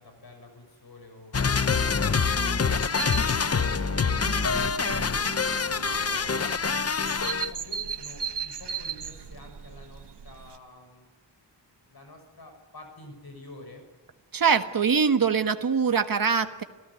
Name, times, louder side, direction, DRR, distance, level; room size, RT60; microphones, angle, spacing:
voice 1, 0.0-2.3 2.8-4.6 4.9-6.4 7.1-11.1 11.3-11.4 11.9-13.8, left 2 dB, 55° left, 5 dB, 6.2 m, -49 dB
sound 1, 1.3-7.5, left 5 dB, 35° left, 0.8 m, -25 dB
Vehicle, 1.6-6.6, right 5 dB, 85° right, 2.6 m, -43 dB
sound 2, 2.8-10.6, right 7 dB, 65° right, 1.5 m, -38 dB
voice 2, 14.3-16.6, right 6 dB, 50° right, 8 dB, 1.6 m, -23 dB
28.0 x 17.0 x 9.7 m, 1.2 s
wide cardioid pair, 130°, 44 cm